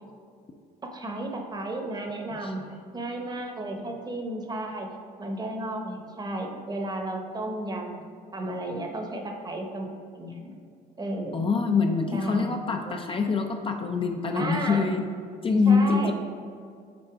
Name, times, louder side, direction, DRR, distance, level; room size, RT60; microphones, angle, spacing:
voice 1, 0.8-2.6 2.9-4.9 5.2-8.0 8.3-9.9 10.2-10.6 11.0-11.4 12.1-12.5 12.8-12.9 14.4-14.9 15.7-16.1, right 1 dB, 25° right, 3 dB, 0.9 m, -33 dB
voice 2, 2.3-2.8 3.8-3.9 11.3-15.0 15.4-16.1, left 4 dB, 30° left, 4 dB, 0.5 m, -25 dB
6.1 x 4.4 x 4.8 m, 2.4 s
cardioid pair, 110°, 17 cm